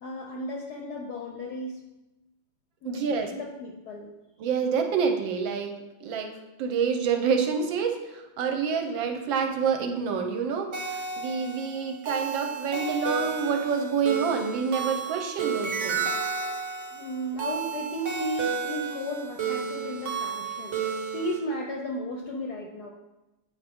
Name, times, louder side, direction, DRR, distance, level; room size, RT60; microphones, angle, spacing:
voice 1, 0.0-1.8 2.8-4.1 16.9-22.9, equal, 70° left, 1 dB, 0.9 m, -34 dB
voice 2, 2.8-3.3 4.4-5.7 6.0-16.1, right 6 dB, 75° right, 5 dB, 1.3 m, -28 dB
sound 1, 10.7-21.4, right 5 dB, 55° right, 0.8 m, -32 dB
8.1 x 4.3 x 3.4 m, 1.0 s
omnidirectional pair, 2.3 m